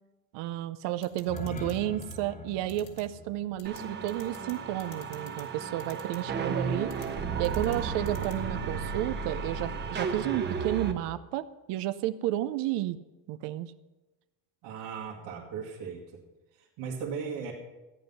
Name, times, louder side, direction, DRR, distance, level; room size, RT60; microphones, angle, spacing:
voice 1, 0.3-6.9 7.4-13.0 13.3-13.7, right 14 dB, 65° right, 13 dB, 0.7 m, -32 dB
sound 1, 1.0-1.7 2.0-2.1 2.7-3.0 3.6-3.8 4.1-4.5 4.8-5.4 5.8-6.2 6.9-7.1 7.4-7.8 8.1-8.3, left 9 dB, 85° left, 2.6 m, -50 dB
sound 2, 1.1-5.2, left 2 dB, 20° left, 0.9 m, -44 dB
sound 3, 3.6-10.9, right 5 dB, 25° right, 0.9 m, -34 dB
voice 2, 14.6-16.2 16.6-17.5, right 6 dB, 80° right, -3 dB, 2.0 m, -37 dB
14.0 x 9.5 x 5.5 m, 1.1 s
cardioid pair, 160°, 44 cm